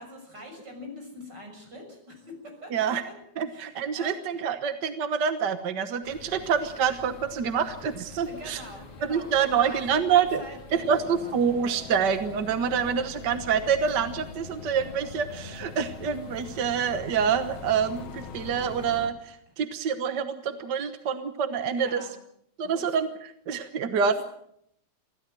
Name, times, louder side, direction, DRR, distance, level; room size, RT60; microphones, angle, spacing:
voice 1, 0.0-2.8 3.5-4.2 8.1-11.4 21.7-22.2 22.6-22.8 23.9-24.2, left 1 dB, 35° right, 3 dB, 7.3 m, -44 dB
voice 2, 2.7-3.0 3.4-8.6 9.1-10.4 10.7-22.0 22.6-23.1 23.5-24.2, right 7 dB, 55° right, 9 dB, 1.2 m, -26 dB
sound 1, 6.0-19.0, left 3 dB, 75° left, 4.2 m, -47 dB
sound 2, 10.7-19.1, left 6 dB, 60° left, 2.5 m, -43 dB
25.0 x 16.0 x 7.7 m, 0.72 s
omnidirectional pair, 3.3 m